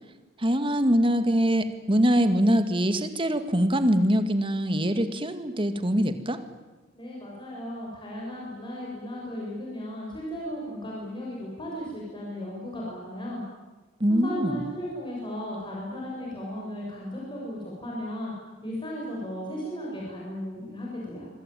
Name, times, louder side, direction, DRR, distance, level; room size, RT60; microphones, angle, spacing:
voice 1, 0.4-6.4 14.0-14.7, equal, 25° right, 9 dB, 2.1 m, -23 dB
voice 2, 6.9-13.4 14.1-18.3 18.6-21.3, equal, 25° left, -4 dB, 7.4 m, -35 dB
27.0 x 23.0 x 9.3 m, 1.2 s
head